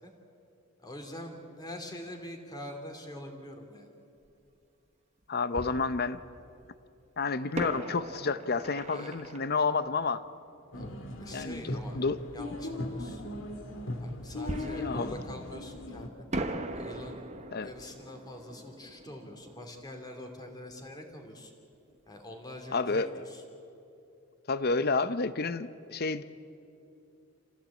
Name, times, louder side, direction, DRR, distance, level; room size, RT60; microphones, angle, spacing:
voice 1, 0.8-3.9 8.9-9.3 10.7-12.0 12.3-13.2 14.0-16.1 16.7-17.3 17.6-21.5 22.1-23.4, left 1 dB, 20° left, 3 dB, 2.9 m, -44 dB
Fireworks, 4.3-4.4 5.5-6.7 7.5-11.0 14.5-15.9 16.3-20.9 21.1-21.2 21.7-22.0, right 1 dB, 35° right, 1.3 m, -40 dB
voice 2, 5.3-6.2 7.2-10.2 11.3-12.2 14.7-15.1 17.5-17.7 22.7-23.2 24.5-26.2, left 4 dB, 50° left, 14 dB, 0.8 m, -30 dB
sound 1, 10.7-16.1, left 1 dB, 65° left, 1.8 m, -38 dB
27.5 x 16.0 x 8.6 m, 2.7 s
head